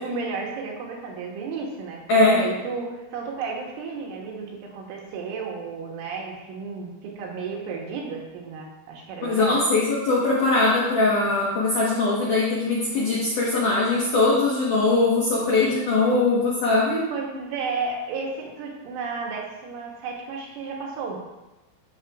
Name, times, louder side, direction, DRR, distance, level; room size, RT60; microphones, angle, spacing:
voice 1, 0.0-9.6 17.1-21.2, right 4 dB, 75° right, -1 dB, 3.4 m, -33 dB
voice 2, 2.1-2.4 9.2-17.1, left 2 dB, 75° left, -6 dB, 1.8 m, -21 dB
13.0 x 6.5 x 2.5 m, 1.0 s
omnidirectional pair, 5.9 m